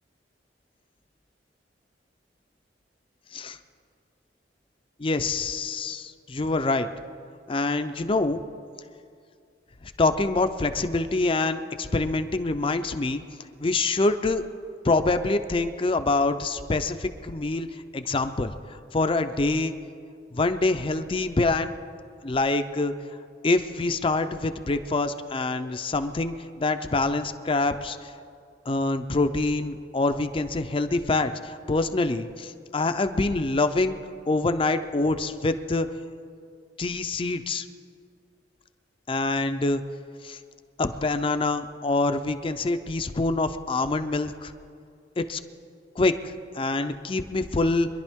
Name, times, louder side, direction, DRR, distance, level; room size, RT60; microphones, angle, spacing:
voice 1, 5.0-6.9 7.5-8.4 9.8-13.2 13.6-14.4 14.8-17.7 17.9-19.7 20.3-21.7 22.2-22.9 23.4-28.1 28.7-34.0 34.3-35.9 36.8-37.7 39.1-39.8 40.2-40.4 40.8-44.5 45.2-45.4 46.0-47.9, left 2 dB, 30° left, 9 dB, 0.5 m, -25 dB
24.0 x 11.0 x 3.6 m, 2.3 s
head